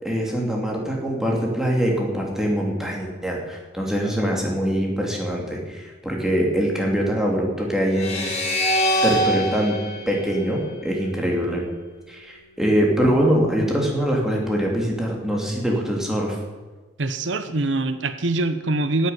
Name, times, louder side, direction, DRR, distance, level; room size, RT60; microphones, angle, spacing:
voice 1, 0.0-8.3 9.0-9.8 10.1-11.6 12.1-16.4, equal, 5° right, -1 dB, 2.9 m, -23 dB
sound 1, 7.9-11.2, equal, 35° left, 2.9 m, -25 dB
voice 2, 17.0-19.1, right 2 dB, 75° right, 10 dB, 0.9 m, -24 dB
12.0 x 8.2 x 9.5 m, 1.3 s
head